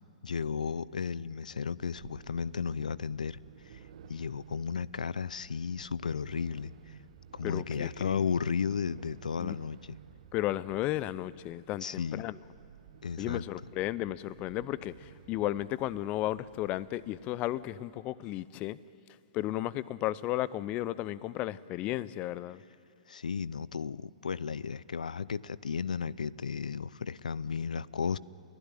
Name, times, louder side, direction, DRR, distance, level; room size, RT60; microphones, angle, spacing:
voice 1, 0.2-3.4 3.7-3.8 4.1-7.0 7.3-10.0 11.8-12.2 13.0-13.4 23.1-28.2, left 6 dB, 80° left, 0.5 m, -34 dB
sound 1, 1.8-17.8, right 8 dB, 60° right, 1.1 m, -55 dB
voice 2, 7.4-8.2 9.4-9.6 10.3-12.3 13.2-18.8 19.3-22.6, left 15 dB, 30° left, 0.6 m, -34 dB
27.5 x 16.0 x 10.0 m
hypercardioid pair, 120°, 4 cm